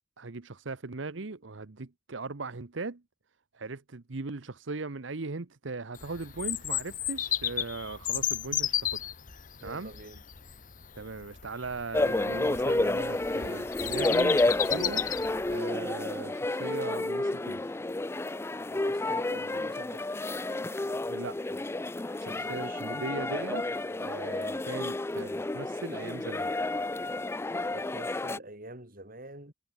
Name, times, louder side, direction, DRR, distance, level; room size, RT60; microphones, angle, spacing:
voice 1, 0.2-3.0 3.5-9.1 9.6-9.9 10.9-15.0 15.4-17.7 21.1-21.6 22.2-23.7 24.0-26.5, right 3 dB, 65° right, 1.0 m, -39 dB
Bird vocalization bird call bird song, 6.0-15.6, left 11 dB, 40° left, 1.3 m, -34 dB
voice 2, 9.6-10.2 18.7-20.1 22.3-23.1 27.7-29.5, right 1 dB, 45° right, 7.9 m, -46 dB
sound 1, 11.9-28.4, left 2 dB, 10° left, 0.4 m, -30 dB
head